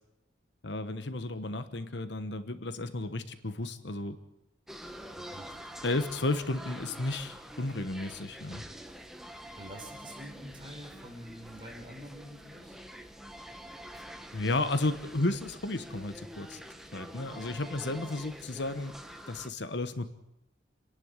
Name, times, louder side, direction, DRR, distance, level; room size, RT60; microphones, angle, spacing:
voice 1, 0.6-4.2 5.8-8.6 14.3-16.6 16.9-18.9 19.3-20.1, left 2 dB, 65° left, 11 dB, 1.2 m, -33 dB
sound 1, 4.7-19.5, equal, ahead, 1.2 m, -46 dB
voice 2, 5.2-5.5 5.7-5.9 9.5-12.8, equal, 25° right, 1 dB, 5.0 m, -47 dB
28.0 x 11.0 x 9.7 m, 0.88 s
head